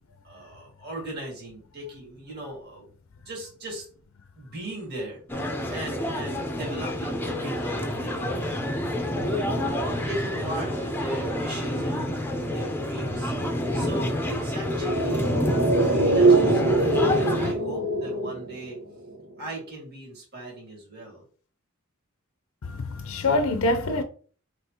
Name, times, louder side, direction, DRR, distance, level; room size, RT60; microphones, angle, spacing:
voice 1, 0.2-2.9 3.2-3.9 4.4-8.8 10.1-12.2 12.5-13.3 13.7-15.3 15.7-18.8 19.4-21.2, right 1 dB, 50° right, 2.1 m, -38 dB
sound 1, 5.3-17.5, left 1 dB, 10° left, 0.7 m, -28 dB
sound 2, 14.6-19.2 19.4-19.5, right 2 dB, 90° right, 1.1 m, -23 dB
voice 2, 22.7-24.0, left 2 dB, 80° left, 0.5 m, -25 dB
5.4 x 3.3 x 2.9 m
head